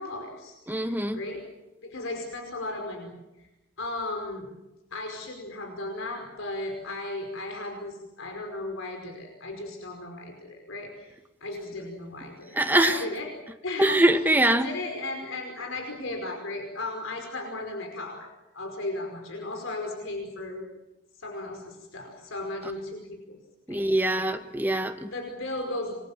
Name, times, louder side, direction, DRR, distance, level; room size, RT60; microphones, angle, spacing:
voice 1, 0.0-1.4 1.8-3.1 3.8-4.5 4.9-11.1 11.4-13.3 13.6-14.0 14.5-18.3 18.5-20.7 21.2-23.4 23.7-24.3 25.0-26.0, left 2 dB, 70° left, 3 dB, 5.2 m, -35 dB
voice 2, 0.7-1.2 12.5-13.0 13.8-14.7 23.7-25.1, right 1 dB, 10° right, 7 dB, 1.4 m, -23 dB
27.5 x 23.0 x 7.5 m, 1.0 s
head